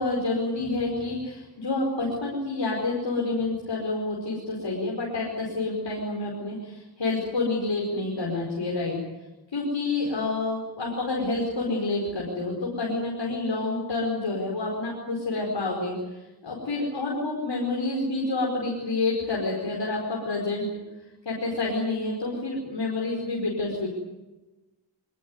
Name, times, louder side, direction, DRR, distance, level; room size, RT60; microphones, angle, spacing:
voice 1, 0.0-9.0 9.5-20.7 21.0-23.9, left 2 dB, 90° left, -2 dB, 5.1 m, -28 dB
25.0 x 18.5 x 9.7 m, 1.1 s
cardioid pair, 40°, 43 cm